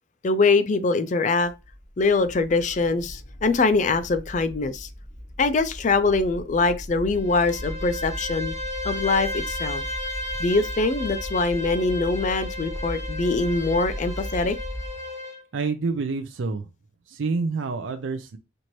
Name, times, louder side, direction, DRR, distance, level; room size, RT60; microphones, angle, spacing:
voice 1, 0.2-1.5 2.0-4.9 5.4-8.5 8.8-9.8 10.4-14.5, left 3 dB, 40° left, 0.4 m, -23 dB
sound 1, 1.4-14.9, equal, 15° right, 0.9 m, -37 dB
Bowed string instrument, 7.1-15.4, left 2 dB, 15° left, 0.9 m, -34 dB
voice 2, 15.5-16.6 17.1-18.4, right 4 dB, 75° right, 0.5 m, -27 dB
4.4 x 2.6 x 3.0 m
head